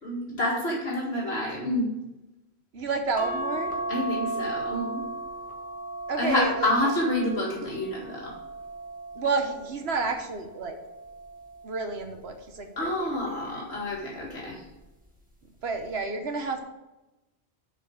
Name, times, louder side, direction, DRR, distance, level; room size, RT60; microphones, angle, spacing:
voice 1, 0.0-1.9 3.9-5.0 6.2-8.4 12.8-14.6, left 1 dB, 70° left, -4 dB, 2.2 m, -28 dB
voice 2, 2.7-3.7 6.1-6.7 9.1-10.8 11.6-13.7 15.6-16.6, right 4 dB, 75° right, 5 dB, 1.2 m, -30 dB
sound 1, 3.2-9.8 10.4-11.8 13.1-13.5 13.8-13.9, right 2 dB, 10° right, 1.3 m, -36 dB
7.4 x 4.5 x 6.9 m, 1.0 s
omnidirectional pair, 1.1 m